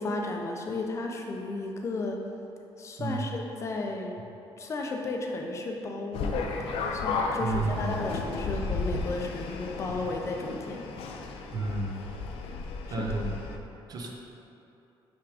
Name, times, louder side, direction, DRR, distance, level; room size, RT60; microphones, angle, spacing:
voice 1, 0.0-2.2 2.8-4.1 4.6-11.5 12.9-13.1, left 2 dB, 30° left, 1 dB, 0.6 m, -34 dB
sound 1, 6.1-13.6, left 3 dB, 85° left, 0.5 m, -34 dB
voice 2, 7.4-8.2 11.5-12.2 12.9-13.3 13.9-14.1, right 2 dB, 40° right, 0 dB, 0.7 m, -32 dB
5.9 x 3.6 x 4.9 m, 2.9 s
cardioid pair, 165°, 10 cm